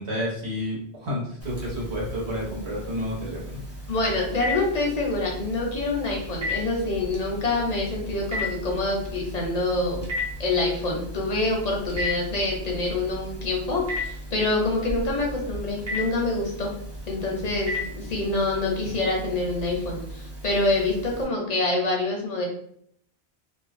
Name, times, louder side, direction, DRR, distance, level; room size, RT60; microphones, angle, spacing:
voice 1, 0.0-3.6, equal, 80° right, -5 dB, 1.2 m, -30 dB
Telephone, 1.4-21.2, left 1 dB, 20° right, 0.5 m, -35 dB
voice 2, 3.9-10.0 10.4-16.7 17.1-22.5, left 2 dB, 50° left, -1 dB, 0.5 m, -26 dB
2.5 x 2.1 x 2.4 m, 0.67 s
omnidirectional pair, 1.1 m